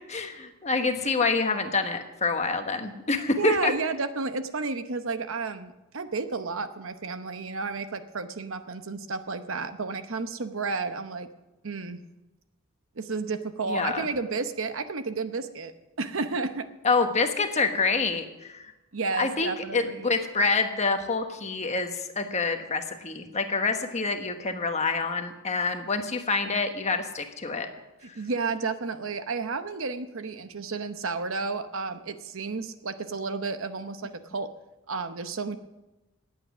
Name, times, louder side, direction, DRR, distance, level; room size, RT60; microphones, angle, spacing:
voice 1, 0.1-3.7 13.7-14.1 16.8-18.7 19.2-27.7, left 4 dB, 30° left, 6 dB, 1.2 m, -27 dB
voice 2, 3.4-11.3 11.6-12.0 13.0-16.7 18.9-20.1 28.0-34.5 34.9-35.6, right 4 dB, 65° right, 10 dB, 0.9 m, -32 dB
18.5 x 8.5 x 6.1 m, 1.0 s
head